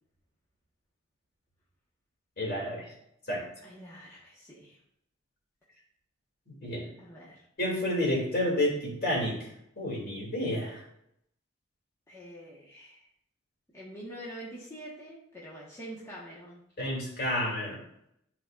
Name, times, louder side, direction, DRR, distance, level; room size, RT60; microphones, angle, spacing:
voice 1, 2.4-2.9 3.3-3.4 6.5-6.9 7.6-9.5 9.8-10.8 16.8-17.8, left 1 dB, 50° left, -3 dB, 2.7 m, -30 dB
voice 2, 3.6-4.8 7.0-7.4 12.1-13.1 13.7-16.6, right 1 dB, 15° left, -7 dB, 1.3 m, -45 dB
12.0 x 4.0 x 2.5 m, 0.75 s
head